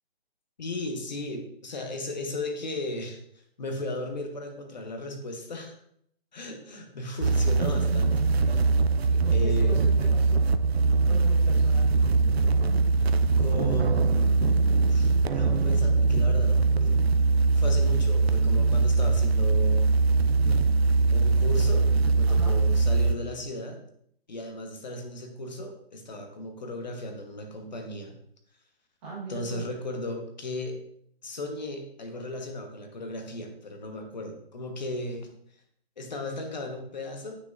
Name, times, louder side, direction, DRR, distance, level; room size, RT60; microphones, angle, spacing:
voice 1, 0.6-3.2 3.6-5.8 6.3-8.3 9.3-9.9 13.4-17.0 17.5-19.9 21.1-21.9 22.1-23.8 24.3-28.1 29.3-30.8 31.2-35.3 36.0-37.4, left 1 dB, 45° left, 4 dB, 1.3 m, -36 dB
sound 1, 7.2-23.1, right 3 dB, 75° right, 0.6 m, -22 dB
voice 2, 9.1-10.4 11.1-11.9 22.2-22.5 29.0-29.6, right 4 dB, 10° right, -7 dB, 1.3 m, -38 dB
8.3 x 6.5 x 2.5 m, 0.68 s
hypercardioid pair, 170°, 31 cm